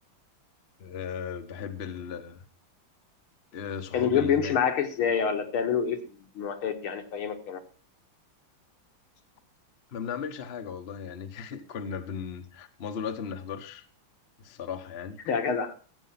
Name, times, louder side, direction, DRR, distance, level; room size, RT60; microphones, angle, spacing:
voice 1, 0.8-2.4 3.5-4.5 9.9-13.8 14.4-15.2, left 7 dB, 40° left, 8 dB, 1.0 m, -36 dB
voice 2, 3.9-6.0 6.4-7.6 15.3-15.7, left 7 dB, 75° left, 6 dB, 2.2 m, -27 dB
15.0 x 8.2 x 5.7 m, 0.40 s
omnidirectional pair, 2.4 m